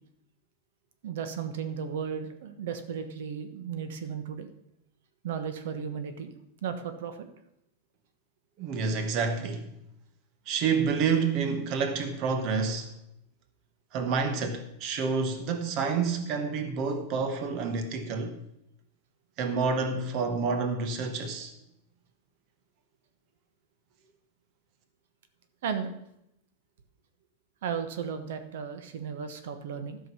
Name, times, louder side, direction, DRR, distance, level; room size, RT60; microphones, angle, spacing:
voice 1, 1.0-4.5 5.2-6.3 6.6-7.3 25.6-25.9 27.6-30.0, right 7 dB, 65° right, 1.2 m, -35 dB
voice 2, 8.6-9.7 10.5-12.9 13.9-18.3 19.4-21.5, right 5 dB, 35° right, 1.1 m, -28 dB
12.5 x 6.3 x 6.1 m
supercardioid pair, 175°, 0 cm